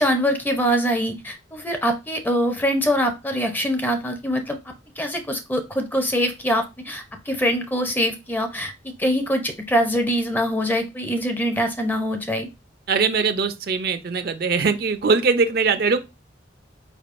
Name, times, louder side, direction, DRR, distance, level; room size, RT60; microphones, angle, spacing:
voice 1, 0.0-12.5, equal, 10° left, 0.5 m, -24 dB
voice 2, 12.9-16.0, right 4 dB, 55° right, 0.5 m, -21 dB
4.9 x 3.4 x 2.5 m
head